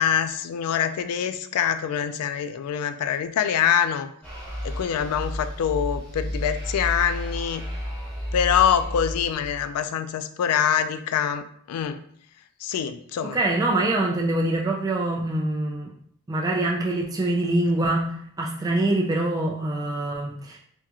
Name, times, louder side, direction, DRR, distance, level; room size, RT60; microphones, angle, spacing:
voice 1, 0.0-4.1 4.6-7.6 8.3-12.0 12.6-13.4, left 8 dB, 85° left, 12 dB, 0.3 m, -24 dB
sound 1, 4.2-9.7, equal, 5° left, 1.0 m, -32 dB
voice 2, 13.3-15.9 16.3-20.6, right 2 dB, 15° right, -2 dB, 0.3 m, -24 dB
3.5 x 2.3 x 2.9 m, 0.64 s
head